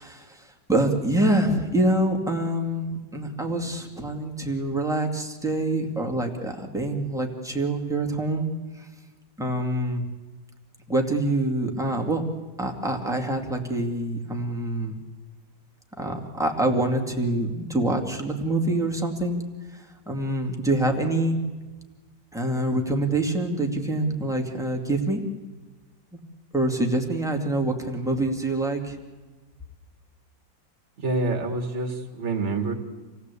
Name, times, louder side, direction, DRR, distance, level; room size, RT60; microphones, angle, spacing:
voice 1, 0.0-8.5 8.8-8.9 9.4-10.0 10.9-12.2 12.6-15.0 16.0-19.4 19.7-21.4 22.3-25.2 26.5-29.0, right 1 dB, ahead, 1 dB, 2.2 m, -26 dB
voice 2, 31.0-32.7, right 3 dB, 40° right, 3 dB, 2.4 m, -27 dB
27.0 x 17.0 x 8.4 m, 1.3 s
omnidirectional pair, 2.0 m